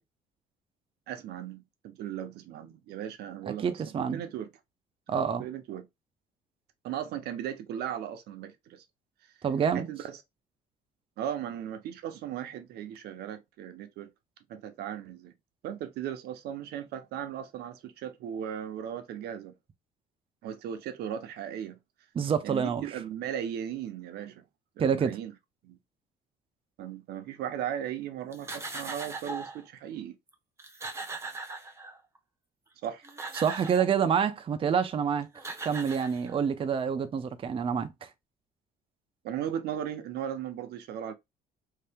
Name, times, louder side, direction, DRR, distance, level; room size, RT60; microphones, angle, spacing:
voice 1, 1.1-3.8 4.1-4.5 5.1-5.9 6.8-8.8 9.7-10.1 11.2-14.1 14.5-15.3 15.6-19.5 20.4-21.8 22.4-24.4 24.8-25.3 25.6-25.8 26.8-30.2 32.8-33.1 39.2-41.1, right 10 dB, 75° right, 0.7 m, -37 dB
voice 2, 3.5-4.2 5.1-5.5 9.4-9.9 22.1-22.8 24.8-25.2 33.3-35.3 35.6-38.1, right 7 dB, 30° right, 0.5 m, -27 dB
sound 1, 28.3-29.6 30.3-30.4 30.6-32.2 32.8-34.0 35.0-35.1 35.3-36.6, right 3 dB, 15° right, 0.9 m, -39 dB
3.3 x 2.8 x 3.4 m
cardioid pair, 110°, 17 cm